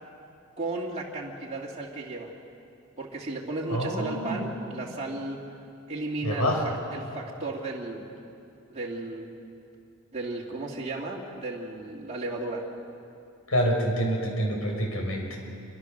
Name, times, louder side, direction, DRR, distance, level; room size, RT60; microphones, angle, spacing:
voice 1, 0.6-2.3 3.0-5.6 5.9-8.1 8.7-9.3 10.1-12.7, right 2 dB, 30° right, -3 dB, 2.4 m, -34 dB
voice 2, 3.7-4.5 6.2-6.8 13.5-15.4, equal, 85° left, 1 dB, 5.6 m, -27 dB
27.0 x 24.0 x 6.6 m, 2.6 s
head